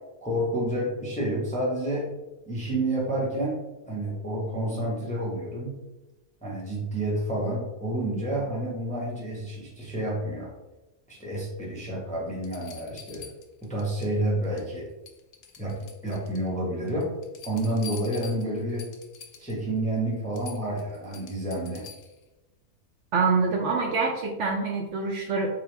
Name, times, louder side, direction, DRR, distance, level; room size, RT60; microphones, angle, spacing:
voice 1, 0.2-2.1 2.5-3.6 3.8-5.8 6.4-10.5 11.1-13.2 13.6-14.9 15.6-15.7 16.0-17.1 17.4-18.9 19.4-21.9, right 1 dB, 10° left, -4 dB, 0.5 m, -29 dB
sound 1, 11.7-11.8 12.4-14.1 14.4-14.8 15.1-16.5 16.9-19.6 20.0-20.1 20.3-22.2 23.9-24.0, left 7 dB, 85° left, 1.1 m, -46 dB
voice 2, 23.1-25.5, right 4 dB, 65° right, 1 dB, 0.8 m, -25 dB
3.7 x 2.9 x 3.2 m, 1.0 s
omnidirectional pair, 1.5 m